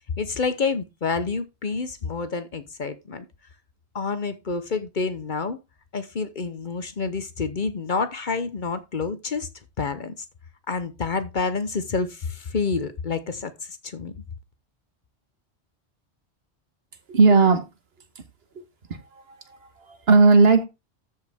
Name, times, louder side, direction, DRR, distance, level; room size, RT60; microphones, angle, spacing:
voice 1, 0.2-3.3 3.9-5.6 5.9-9.5 9.8-10.1 10.7-14.1, left 4 dB, 50° left, 0.9 m, -28 dB
voice 2, 17.1-17.6 18.5-18.6 18.9-20.6, right 3 dB, 65° right, 1.5 m, -18 dB
13.0 x 5.1 x 3.5 m
omnidirectional pair, 1.1 m